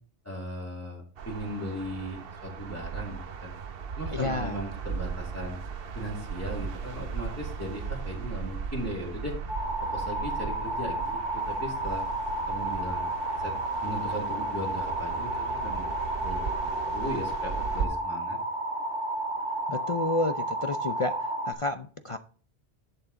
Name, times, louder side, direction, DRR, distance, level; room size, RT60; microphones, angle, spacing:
voice 1, 0.2-3.5 4.0-5.6 5.9-9.3 9.8-12.1 12.5-13.1 13.4-13.5 13.8-18.4, equal, 15° left, -2 dB, 2.5 m, -37 dB
sound 1, 1.2-17.9, right 6 dB, 60° right, 1.0 m, -37 dB
voice 2, 4.1-4.6 19.7-21.2 21.5-22.2, left 2 dB, 40° left, 8 dB, 0.5 m, -30 dB
sound 2, 9.5-21.5, right 1 dB, 90° left, 3.2 m, -32 dB
11.0 x 7.2 x 3.9 m, 0.41 s
omnidirectional pair, 1.1 m